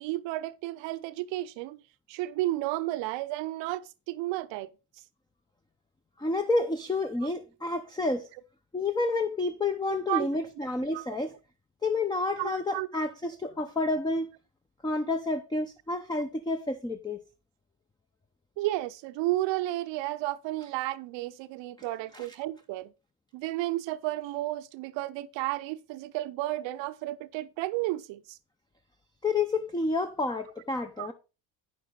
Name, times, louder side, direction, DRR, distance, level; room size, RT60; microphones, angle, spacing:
voice 1, 0.0-1.8 2.1-4.7 10.1-10.3 10.9-11.0 12.4-12.9 18.6-22.9 23.3-28.4 31.0-31.1, right 16 dB, 80° right, 0.7 m, -32 dB
voice 2, 6.2-8.3 8.7-11.3 11.8-14.3 14.8-17.2 22.1-22.3 29.2-31.1, left 2 dB, 10° left, 0.7 m, -29 dB
8.9 x 6.6 x 3.9 m
cardioid pair, 90°, 43 cm